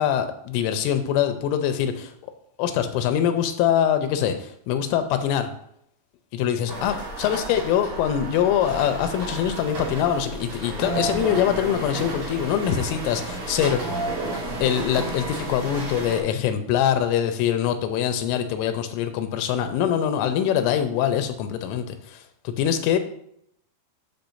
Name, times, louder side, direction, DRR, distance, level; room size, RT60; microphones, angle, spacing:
voice 1, 0.0-2.3 2.6-5.5 6.3-6.9 7.2-13.8 14.6-23.0, left 9 dB, 90° left, 8 dB, 3.3 m, -23 dB
sound 1, 6.7-16.2, right 2 dB, 45° right, 2.8 m, -32 dB
8.7 x 7.9 x 2.6 m, 0.71 s
omnidirectional pair, 5.5 m